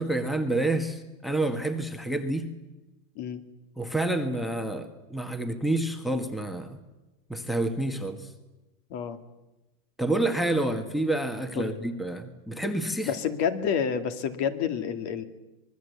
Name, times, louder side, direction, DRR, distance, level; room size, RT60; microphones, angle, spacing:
voice 1, 0.0-2.5 3.8-6.8 7.3-8.3 10.0-13.1, right 2 dB, ahead, 8 dB, 1.5 m, -28 dB
voice 2, 13.0-15.2, left 7 dB, 40° left, 10 dB, 2.2 m, -29 dB
25.5 x 21.5 x 8.3 m, 1.1 s
supercardioid pair, 145°, 42 cm